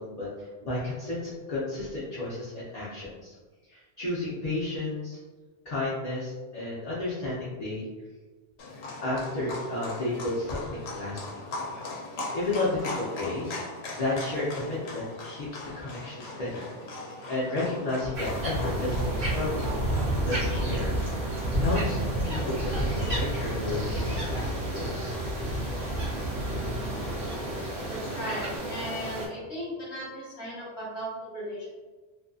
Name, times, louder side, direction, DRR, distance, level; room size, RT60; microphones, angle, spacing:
voice 1, 0.0-3.3 3.7-5.2 5.7-7.8 9.0-11.2 12.3-13.6 14.0-16.6 17.3-19.7 20.2-20.9 21.6-25.1, left 2 dB, 45° left, -8 dB, 0.6 m, -32 dB
Livestock farm animals working animals, 8.6-28.6, left 2 dB, 80° left, 0.8 m, -41 dB
sound 1, 18.1-29.3, right 1 dB, 60° right, 0.9 m, -30 dB
voice 2, 27.9-31.7, equal, 5° right, -10 dB, 0.6 m, -36 dB
2.5 x 2.5 x 2.3 m, 1.3 s
omnidirectional pair, 1.1 m